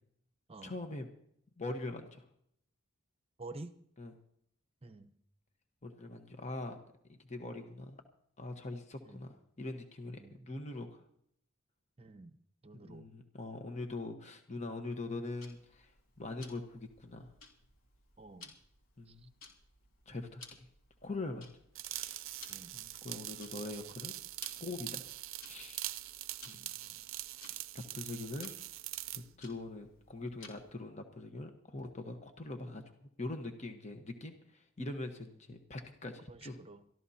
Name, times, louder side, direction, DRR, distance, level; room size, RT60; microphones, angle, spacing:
voice 1, 0.6-1.1 1.6-2.2 4.0-4.1 5.8-6.8 7.1-8.0 8.4-11.0 12.8-15.9 16.2-17.3 19.0-19.3 20.1-20.7 21.0-21.4 21.9-22.3 22.7-24.1 24.6-25.0 25.4-25.9 26.5-26.6 27.4-27.5 27.9-28.5 29.1-32.8 33.2-36.6, left 2 dB, 30° left, 5 dB, 1.2 m, -42 dB
voice 2, 3.4-3.8 4.8-5.1 9.0-9.3 10.2-10.5 12.0-12.4 12.6-13.1 18.2-18.5 19.1-19.3 20.1-20.2 22.5-22.8 26.5-27.0 36.3-36.8, right 2 dB, 25° right, 10 dB, 0.8 m, -50 dB
Tick-tock, 15.4-30.8, left 4 dB, 80° left, 3.1 m, -58 dB
sound 1, 21.7-29.2, right 15 dB, 70° right, 0.5 m, -43 dB
23.5 x 14.0 x 2.8 m, 0.71 s
head